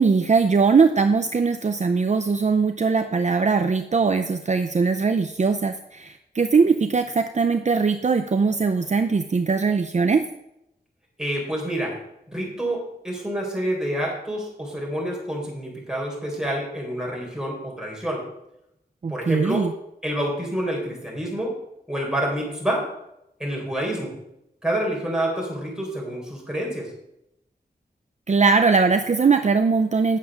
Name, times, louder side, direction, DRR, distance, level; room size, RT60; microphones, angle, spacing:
voice 1, 0.0-10.2 19.0-19.7 28.3-30.2, right 4 dB, 45° right, 8 dB, 0.5 m, -20 dB
voice 2, 11.2-12.0 12.3-18.2 19.1-19.7 20.0-21.6 21.9-22.9 23.4-24.1 24.6-26.9, right 1 dB, 5° right, -2 dB, 3.9 m, -28 dB
9.2 x 7.1 x 6.4 m, 0.84 s
wide cardioid pair, 100°, 17 cm